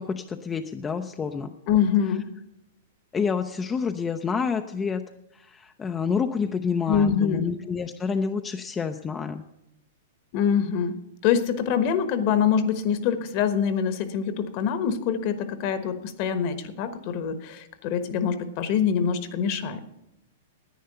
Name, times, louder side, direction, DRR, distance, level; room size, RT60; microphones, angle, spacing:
voice 1, 0.0-1.5 3.1-5.0 5.3-9.4, left 5 dB, 15° left, 6 dB, 0.5 m, -28 dB
voice 2, 1.7-2.3 6.9-7.4 10.3-10.9 11.2-19.8, left 7 dB, 45° left, 11 dB, 1.2 m, -24 dB
10.5 x 9.4 x 6.7 m, 0.86 s
hypercardioid pair, 130°, 0 cm